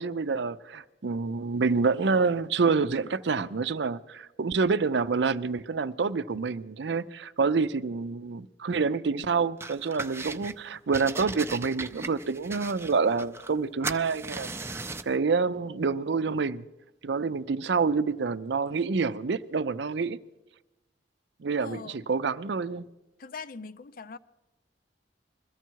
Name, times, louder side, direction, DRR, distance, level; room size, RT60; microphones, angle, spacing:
voice 1, 0.0-16.7 17.0-20.2 21.4-22.9, right 4 dB, 70° right, 0.5 m, -27 dB
sound 1, 9.6-10.6 10.9-13.6 13.8-15.2, right 3 dB, 15° right, 0.5 m, -37 dB
voice 2, 21.6-22.0 23.2-24.2, left 4 dB, 50° left, 0.5 m, -41 dB
21.5 x 14.0 x 4.6 m
head